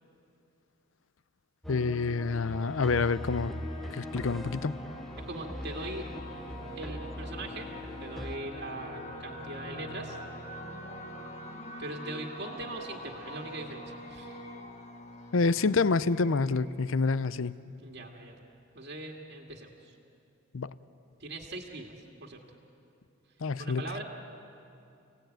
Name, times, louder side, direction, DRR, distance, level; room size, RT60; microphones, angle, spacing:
sound 1, 1.6-8.4, equal, ahead, 0.6 m, -41 dB
voice 1, 1.7-3.5 3.9-4.8 15.3-17.6 20.5-20.7 23.4-23.8, left 4 dB, 70° left, 16 dB, 0.6 m, -27 dB
sound 2, 2.3-17.6, left 1 dB, 35° left, 1.7 m, -44 dB
voice 2, 5.3-6.1 6.8-7.7 8.0-10.2 11.8-14.5 17.8-18.4 18.7-20.0 21.2-22.4 23.6-24.0, right 2 dB, 55° right, 1 dB, 2.0 m, -41 dB
29.5 x 18.0 x 9.2 m, 2.7 s
head